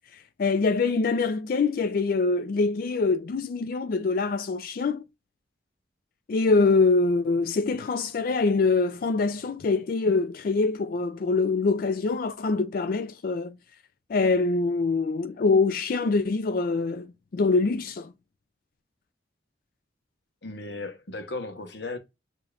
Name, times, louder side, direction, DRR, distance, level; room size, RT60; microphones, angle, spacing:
voice 1, 0.1-5.1 6.3-13.5 14.1-17.1 17.3-18.1, left 3 dB, 55° left, 0.4 m, -24 dB
voice 2, 20.4-22.0, left 2 dB, 80° left, 1.2 m, -36 dB
6.9 x 2.9 x 2.4 m
head